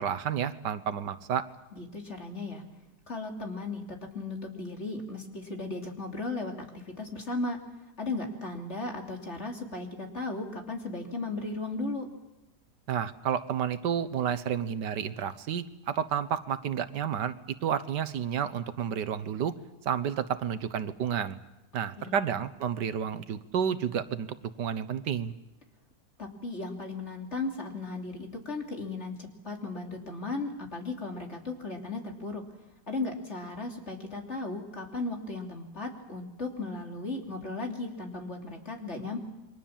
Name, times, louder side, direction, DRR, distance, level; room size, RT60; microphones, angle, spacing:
voice 1, 0.0-1.4 12.9-17.3 17.6-19.5 19.8-21.4 21.7-25.4, right 8 dB, 85° right, 12 dB, 1.7 m, -31 dB
voice 2, 1.7-2.6 3.1-7.6 8.0-12.1 22.0-22.2 26.2-32.4 32.9-39.2, left 3 dB, 40° left, 2 dB, 3.4 m, -36 dB
28.5 x 23.5 x 7.3 m, 1.0 s
omnidirectional pair, 1.8 m